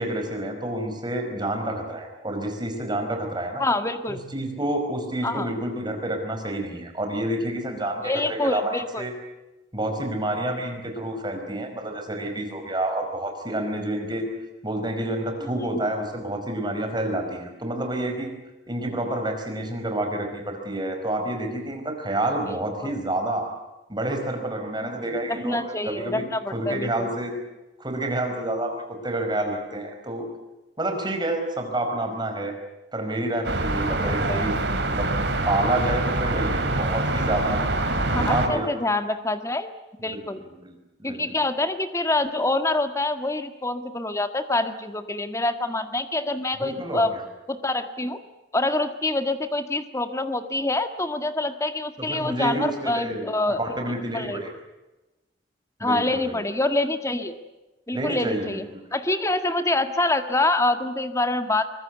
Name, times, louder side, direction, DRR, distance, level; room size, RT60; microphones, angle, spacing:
voice 1, 0.0-3.6 4.1-9.1 9.7-14.3 14.6-18.3 18.7-23.5 23.9-25.6 25.8-26.2 26.5-27.3 27.8-28.7 29.0-30.2 30.8-32.5 32.9-35.2 35.4-37.6 38.1-38.7 40.1-40.7 41.0-41.4 46.6-47.2 52.0-54.5 55.8-56.3 57.9-58.8, right 1 dB, 25° right, 4 dB, 5.0 m, -29 dB
voice 2, 3.6-4.2 5.2-5.5 8.0-9.0 15.5-15.8 22.5-22.9 25.3-27.1 34.0-34.6 38.1-39.7 40.0-40.4 41.0-47.1 47.5-48.2 48.5-53.6 54.1-54.5 55.8-57.4 57.9-58.7 58.9-61.7, left 2 dB, 15° left, 8 dB, 1.7 m, -26 dB
sound 1, 33.4-38.5, right 2 dB, 70° right, 2.9 m, -25 dB
24.0 x 21.0 x 8.1 m, 1.0 s
head